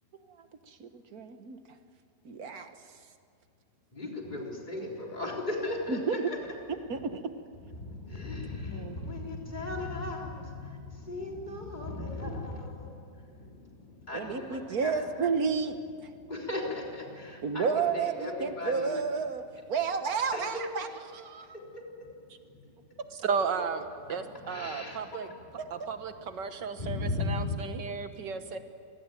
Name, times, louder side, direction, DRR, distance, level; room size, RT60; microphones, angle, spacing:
voice 1, 0.4-1.6 2.3-2.7 5.9-6.3 6.9-7.4 8.7-9.0 14.1-16.1 17.4-19.4 19.7-21.6 25.6-25.7, right 5 dB, 60° right, 9 dB, 1.7 m, -31 dB
voice 2, 4.0-6.4 8.1-10.3 11.1-12.9 14.1-15.0 16.3-17.0 17.5-18.9 20.3-20.4 23.6-23.7 24.5-25.0 26.8-27.6, left 2 dB, 25° left, -1 dB, 3.9 m, -36 dB
voice 3, 23.1-23.8 24.1-25.3 25.7-28.6, right 6 dB, 85° right, 8 dB, 2.0 m, -34 dB
26.5 x 18.5 x 9.2 m, 2.3 s
omnidirectional pair, 1.8 m